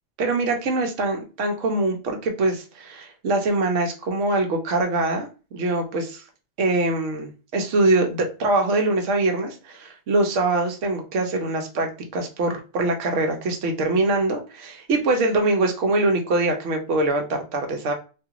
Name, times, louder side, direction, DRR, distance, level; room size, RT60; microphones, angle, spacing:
voice 1, 0.2-5.3 5.5-6.2 6.6-17.9, right 2 dB, 75° right, 3 dB, 1.1 m, -23 dB
2.7 x 2.4 x 2.8 m, 0.33 s
omnidirectional pair, 1.3 m